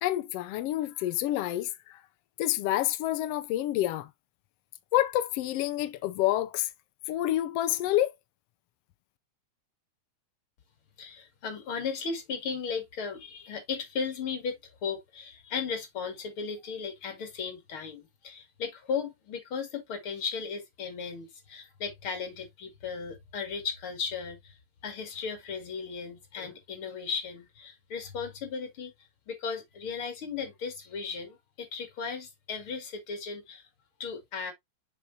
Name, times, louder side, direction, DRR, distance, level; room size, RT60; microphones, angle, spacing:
voice 1, 0.0-2.0 2.4-4.1 4.9-6.7 7.1-8.1, left 14 dB, 85° left, 1.4 m, -28 dB
voice 2, 11.0-24.6 24.8-33.7 34.0-34.5, left 5 dB, 45° left, 2.8 m, -36 dB
6.9 x 6.6 x 2.7 m
omnidirectional pair, 3.4 m